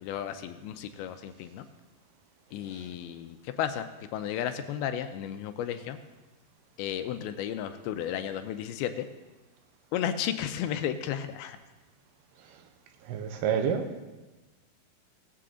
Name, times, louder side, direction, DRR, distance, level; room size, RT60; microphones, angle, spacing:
voice 1, 0.0-1.7 2.5-6.0 6.8-9.1 9.9-11.6, left 10 dB, 85° left, 8 dB, 2.5 m, -33 dB
voice 2, 13.1-14.0, right 7 dB, 85° right, 6 dB, 2.8 m, -29 dB
18.5 x 7.7 x 3.7 m, 1.2 s
omnidirectional pair, 4.5 m